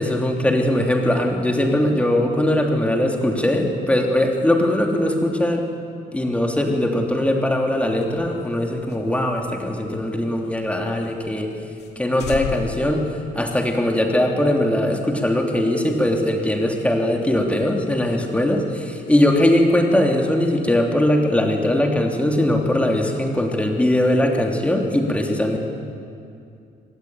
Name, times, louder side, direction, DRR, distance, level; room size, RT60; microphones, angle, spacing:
voice 1, 0.0-5.6 6.1-11.5 12.0-13.0 13.3-25.6, left 1 dB, 10° left, 2 dB, 3.2 m, -20 dB
sound 1, 7.8-10.7 11.0-11.1 11.4-11.5 11.8-11.9 12.2-13.9, left 6 dB, 80° left, 2.4 m, -35 dB
25.5 x 19.5 x 9.2 m, 2.5 s
cardioid pair, 110°, 17 cm